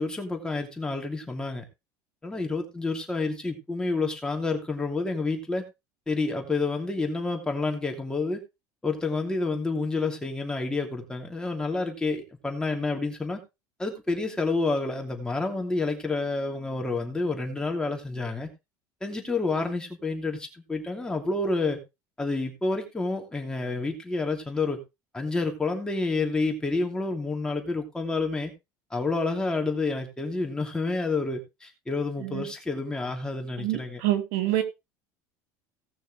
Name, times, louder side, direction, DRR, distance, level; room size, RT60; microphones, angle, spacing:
voice 1, 0.0-1.6 2.2-5.6 6.1-8.4 8.8-13.4 13.8-18.5 19.0-21.8 22.2-24.8 25.1-28.5 28.9-34.0, left 3 dB, 10° left, 2.8 m, -29 dB
voice 2, 33.6-34.6, right 14 dB, 75° right, 2.2 m, -27 dB
17.5 x 6.3 x 3.2 m
supercardioid pair, 130°, 9 cm